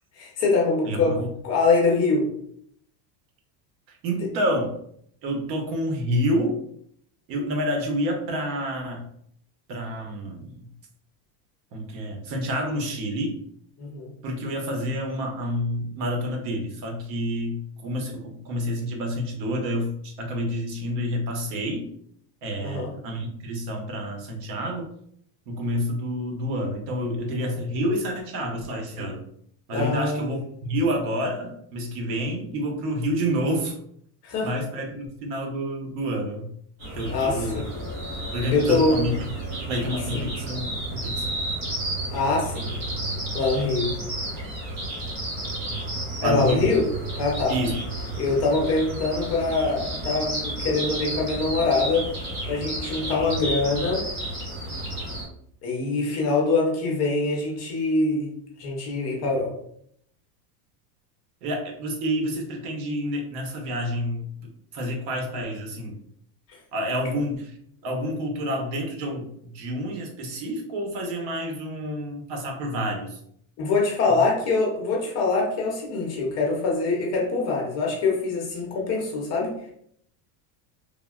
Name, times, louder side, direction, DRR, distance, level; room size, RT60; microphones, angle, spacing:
voice 1, 0.2-1.2 1.4-2.3 13.8-14.1 22.6-22.9 29.7-30.2 34.2-34.5 37.1-37.7 38.5-39.0 40.1-40.2 42.1-42.8 43.3-43.9 46.2-46.9 47.2-47.5 48.2-52.1 52.5-54.0 55.6-58.3 58.6-59.5 73.6-79.5, left 3 dB, 30° left, -2 dB, 0.7 m, -24 dB
voice 2, 0.8-1.3 3.9-4.7 5.2-6.6 7.3-9.0 9.7-10.7 11.7-13.4 14.2-21.9 22.4-24.9 25.5-29.2 29.7-33.7 34.4-36.5 36.9-37.6 38.3-39.1 39.7-41.3 46.2-46.8 47.5-47.8 61.4-66.0 66.7-67.5 67.8-73.2 74.1-74.2, equal, 75° right, 2 dB, 0.9 m, -28 dB
sound 1, 36.8-55.3, right 1 dB, 45° right, 1.0 m, -32 dB
3.5 x 2.1 x 2.3 m, 0.68 s
cardioid pair, 160°, 49 cm